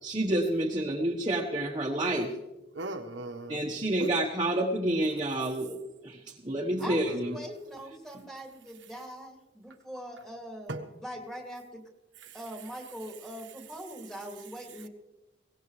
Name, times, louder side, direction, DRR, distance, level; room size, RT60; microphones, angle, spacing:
voice 1, 0.0-2.3 3.5-5.8 6.0-7.3, right 1 dB, 25° right, 0 dB, 1.3 m, -29 dB
voice 2, 2.7-3.6 4.0-4.1 6.8-6.9 10.7-10.8, right 2 dB, 80° right, 5 dB, 1.3 m, -37 dB
voice 3, 6.8-11.8 12.3-14.9, equal, ahead, 0 dB, 2.5 m, -42 dB
22.0 x 18.0 x 3.3 m, 1.0 s
head